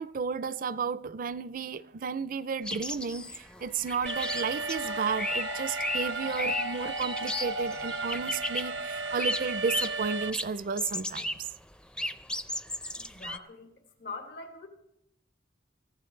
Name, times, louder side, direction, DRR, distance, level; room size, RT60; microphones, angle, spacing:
voice 1, 0.0-11.5, right 5 dB, 50° right, 0.5 m, -33 dB
sound 1, 2.6-8.8 9.2-10.1 10.3-11.5 11.7-13.4, left 1 dB, 5° left, 0.5 m, -35 dB
sound 2, 3.2-10.3, left 8 dB, 45° left, 0.6 m, -44 dB
Alarm, 4.1-10.3, right 3 dB, 90° right, 0.8 m, -35 dB
voice 2, 13.0-13.7 14.0-14.7, left 3 dB, 75° left, 2.9 m, -42 dB
24.5 x 15.0 x 3.3 m
head